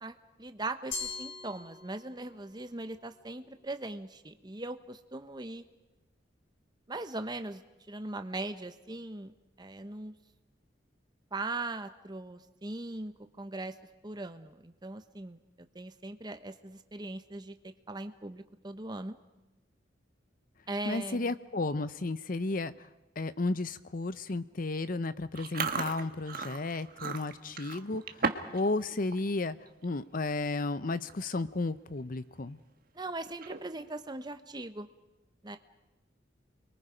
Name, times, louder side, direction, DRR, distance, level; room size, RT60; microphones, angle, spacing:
voice 1, 0.0-5.6 6.9-10.1 11.3-13.8 14.0-15.4 15.7-19.2 20.7-21.3 32.9-34.9 35.4-35.6, right 2 dB, 25° right, 9 dB, 1.0 m, -40 dB
Glass, 0.9-2.4, left 5 dB, 85° left, 5.2 m, -40 dB
voice 2, 20.9-22.7 23.2-29.6 29.8-32.6, left 2 dB, 50° left, 14 dB, 0.8 m, -33 dB
Chewing mastication, 25.3-28.6 28.9-29.2 29.7-29.9 30.6-30.7 30.9-31.3 31.7-31.8 33.3-33.8, right 4 dB, 50° right, 1.4 m, -35 dB
29.5 x 22.5 x 5.2 m, 1.0 s
head